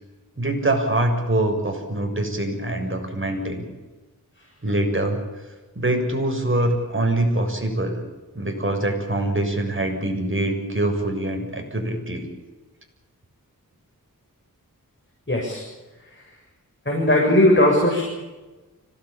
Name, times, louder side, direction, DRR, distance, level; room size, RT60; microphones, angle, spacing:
voice 1, 0.4-3.7 4.6-5.2 5.8-8.0 8.3-12.3, right 1 dB, 35° right, 3 dB, 7.0 m, -24 dB
voice 2, 15.3-15.6 16.1-16.2 16.9-18.0, left 1 dB, 30° left, -1 dB, 7.3 m, -18 dB
25.5 x 19.0 x 8.8 m, 1.2 s
wide cardioid pair, 60°, 36 cm